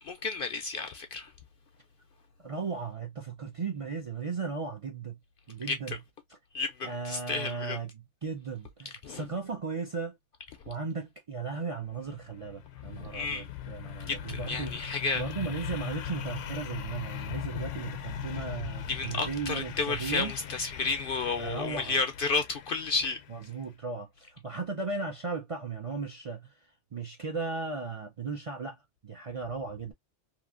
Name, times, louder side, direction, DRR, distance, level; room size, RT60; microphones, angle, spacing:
voice 1, 0.0-1.3 5.7-6.0 6.5-7.8 9.0-9.2 13.1-13.5 14.1-15.2 18.9-23.2, left 4 dB, 60° left, 0.6 m, -32 dB
voice 2, 2.4-5.2 5.5-6.0 6.8-10.2 10.7-20.3 21.4-22.0 23.3-26.5 26.9-29.9, right 4 dB, 40° right, 0.5 m, -36 dB
sound 1, 11.8-23.5, left 10 dB, 80° left, 0.9 m, -40 dB
2.9 x 2.5 x 2.4 m
omnidirectional pair, 1.2 m